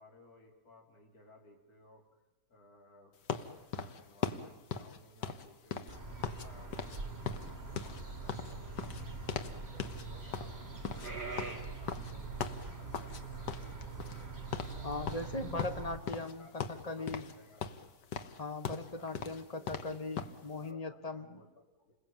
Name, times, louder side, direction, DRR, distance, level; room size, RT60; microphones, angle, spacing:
voice 1, 0.0-2.2 2.5-5.9 6.2-8.9 9.5-14.3 14.7-15.3 16.0-17.6 19.0-20.0 20.6-22.0, left 2 dB, 60° left, 1 dB, 4.2 m, -60 dB
sound 1, 3.3-6.5 6.7-7.0 7.2-9.5 9.8-10.0 10.3-13.2 13.5-14.3 14.5-14.8 15.1-16.3 16.6-17.3 17.6-20.4, left 7 dB, 80° left, 1.9 m, -39 dB
sound 2, 5.9-16.0, right 4 dB, 35° right, 3.3 m, -43 dB
voice 2, 14.8-17.3 18.4-21.4, left 2 dB, 25° left, 8 dB, 1.5 m, -39 dB
29.5 x 21.0 x 9.1 m, 1.0 s
omnidirectional pair, 1.8 m